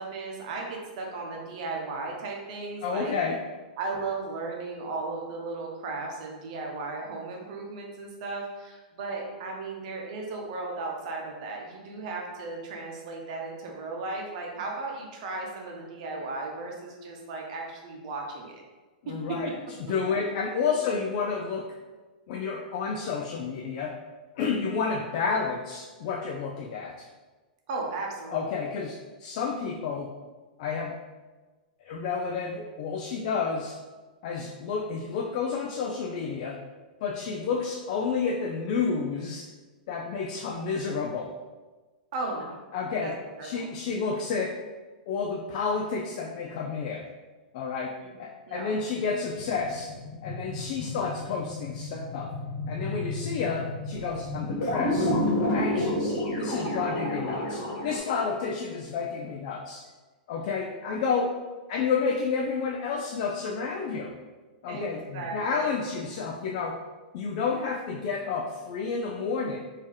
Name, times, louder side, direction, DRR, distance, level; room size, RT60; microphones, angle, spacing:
voice 1, 0.0-3.1 3.8-18.6 19.1-19.4 27.7-28.6 42.1-42.6 43.0-43.7 48.0-48.1 48.5-48.8 64.7-65.9, right 3 dB, 50° right, 0 dB, 0.8 m, -36 dB
voice 2, 2.8-3.4 19.0-19.5 19.8-21.7 22.3-23.9 24.4-27.1 28.3-30.1 30.6-30.9 31.8-33.8 34.2-36.6 37.0-39.5 39.9-41.3 42.7-43.1 43.4-44.5 45.1-47.1 47.5-47.9 48.2-49.9 50.2-52.3 52.7-55.1 55.4-59.8 60.3-61.3 61.7-64.2 64.6-66.8 67.1-69.6, left 5 dB, 45° left, 0 dB, 0.3 m, -30 dB
sound 1, 49.4-58.0, left 1 dB, 70° left, 1.3 m, -30 dB
3.6 x 2.7 x 3.2 m, 1.3 s
hypercardioid pair, 150°, 5 cm